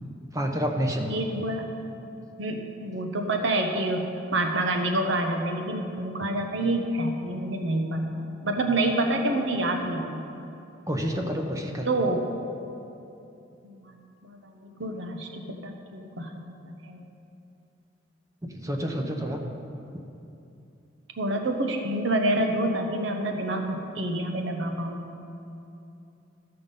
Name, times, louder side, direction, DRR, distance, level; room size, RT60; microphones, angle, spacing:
voice 1, 0.3-1.1 10.9-11.9 18.5-19.4, equal, 15° right, 2 dB, 0.8 m, -28 dB
voice 2, 1.1-1.6 2.4-8.1 8.4-10.2 11.9-12.3 13.6-14.0 14.2-17.1 18.6-19.2 21.2-25.0, right 1 dB, 70° right, 4 dB, 0.9 m, -28 dB
14.0 x 5.8 x 5.3 m, 2.8 s
head